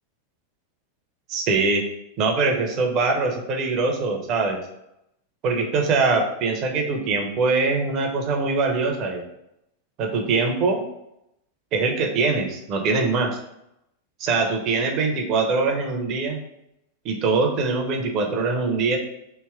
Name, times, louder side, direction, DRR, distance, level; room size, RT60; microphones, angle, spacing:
voice 1, 1.3-1.8 2.2-4.6 5.4-9.2 10.0-10.9 11.7-13.3 14.2-16.4 17.0-19.0, right 4 dB, 35° right, 3 dB, 0.8 m, -23 dB
3.3 x 3.0 x 4.5 m, 0.84 s
figure-of-eight pair, 90°, 0 cm